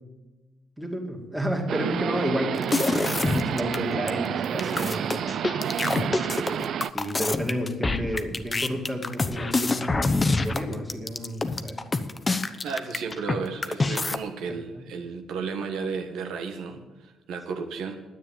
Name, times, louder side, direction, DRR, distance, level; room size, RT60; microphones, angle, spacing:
voice 1, 0.8-5.3 5.7-6.2 6.9-11.8 14.5-14.9, equal, 5° right, 0 dB, 2.4 m, -31 dB
sound 1, 1.7-6.9, right 9 dB, 65° right, 0.4 m, -29 dB
sound 2, 2.6-3.8 4.1-4.2 4.4-13.4 13.6-14.2, left 3 dB, 25° left, 0.9 m, -26 dB
voice 2, 12.6-18.0, right 5 dB, 80° right, 4 dB, 1.3 m, -33 dB
10.0 x 8.6 x 8.9 m, 1.2 s
cardioid pair, 90°, 0 cm